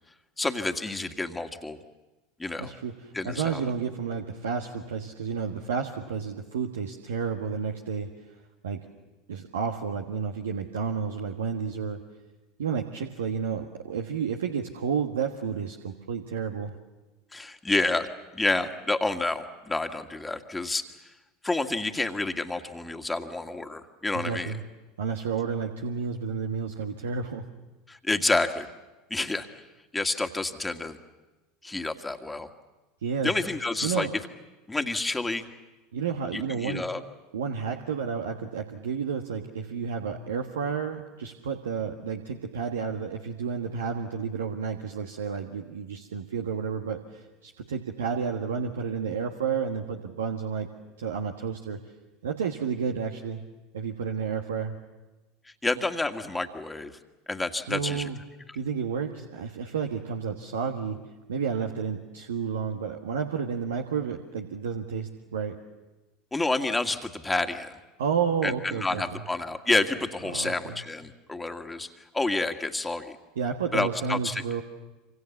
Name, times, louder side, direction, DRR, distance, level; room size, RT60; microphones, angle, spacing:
voice 1, 0.4-1.8 2.4-2.7 3.1-3.7 17.3-18.1 18.3-20.8 21.4-24.5 27.9-28.7 29.1-29.5 29.9-31.0 31.6-32.5 33.2-34.1 34.7-35.5 36.3-37.0 55.6-56.9 57.3-58.1 66.3-67.7 68.4-73.2 73.7-74.6, left 2 dB, 10° left, 6 dB, 1.9 m, -29 dB
voice 2, 2.6-8.1 8.6-8.9 9.3-12.0 12.6-16.7 24.1-24.6 25.0-27.4 33.0-33.3 33.8-34.1 35.9-36.8 37.3-50.7 51.0-51.8 52.2-53.4 53.7-54.8 57.7-58.2 58.5-61.0 61.3-65.6 68.0-69.0 70.3-70.8 73.3-74.6, right 6 dB, 75° right, 3 dB, 1.4 m, -31 dB
26.5 x 26.0 x 7.2 m, 1.1 s
figure-of-eight pair, 75°, 0 cm